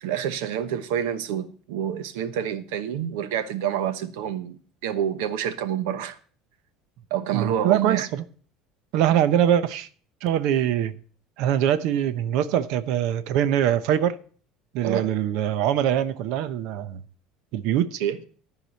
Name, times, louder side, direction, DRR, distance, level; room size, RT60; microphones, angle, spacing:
voice 1, 0.0-6.2 7.1-8.1 14.8-15.1 18.0-18.2, right 9 dB, 80° right, 1.1 m, -28 dB
voice 2, 7.3-8.2 8.9-9.9 10.2-11.0 11.4-14.1 14.7-17.0 17.5-18.0, right 10 dB, 55° right, 0.8 m, -23 dB
13.5 x 4.9 x 6.8 m
cardioid pair, 170°, 0 cm